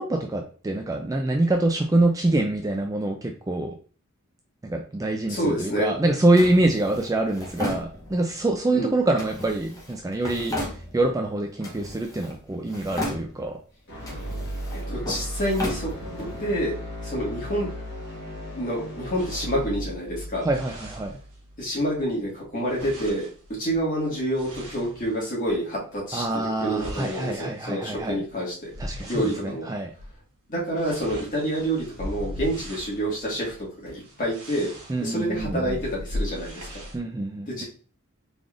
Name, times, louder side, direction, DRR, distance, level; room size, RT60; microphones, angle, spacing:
voice 1, 0.0-3.8 4.6-10.6 10.9-13.6 20.4-21.2 26.1-28.2 28.8-29.9 34.9-35.8 36.9-37.6, right 2 dB, 15° right, 2 dB, 0.3 m, -25 dB
voice 2, 5.3-5.9 8.7-8.9 14.9-16.7 17.0-17.7 18.6-20.5 21.6-23.3 23.6-28.7 29.0-29.7 30.5-34.7 35.0-36.8 37.5-37.6, equal, 35° left, -4 dB, 1.7 m, -28 dB
Drawer open or close, 6.4-8.4 9.2-11.2 11.6-12.4 12.7-13.6 14.0-16.4, left 1 dB, 15° left, 0.9 m, -35 dB
sound 1, 13.9-22.0, equal, 50° left, 1.5 m, -36 dB
sound 2, 19.2-21.7 22.0-25.6 26.2-29.5 29.9-30.2 30.5-37.0, equal, 75° right, 1.2 m, -39 dB
3.7 x 3.4 x 2.4 m, 0.39 s
head